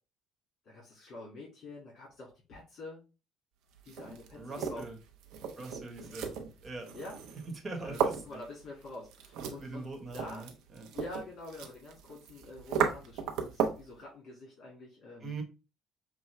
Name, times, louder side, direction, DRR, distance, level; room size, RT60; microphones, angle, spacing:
voice 1, 0.6-3.0 3.8-5.0 6.0-6.1 6.9-7.2 7.8-9.9 10.1-10.4 10.9-15.3, left 2 dB, 55° left, -4 dB, 2.0 m, -46 dB
sound 1, 3.7-13.9, right 7 dB, 80° right, 0.8 m, -36 dB
voice 2, 4.0-4.9 5.6-6.3 6.6-6.9 7.5-8.2 9.6-10.9 15.2-15.4, right 3 dB, 25° right, 3 dB, 1.3 m, -42 dB
5.9 x 2.3 x 3.2 m, 0.31 s
cardioid pair, 120°, 0 cm